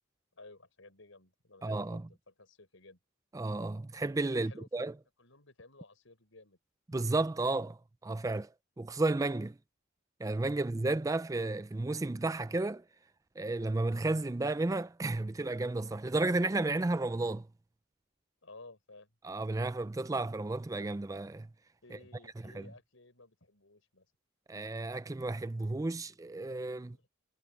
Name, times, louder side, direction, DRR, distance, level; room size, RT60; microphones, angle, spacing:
voice 1, 0.3-3.0 4.3-6.6 18.4-19.1 21.8-24.1 26.8-27.1, left 2 dB, 70° left, 6.3 m, -56 dB
voice 2, 1.6-2.0 3.3-4.9 6.9-8.5 8.8-9.6 10.2-12.8 13.4-17.5 19.2-21.5 21.9-22.0 22.4-22.7 24.5-27.0, right 2 dB, 15° right, 0.4 m, -32 dB
head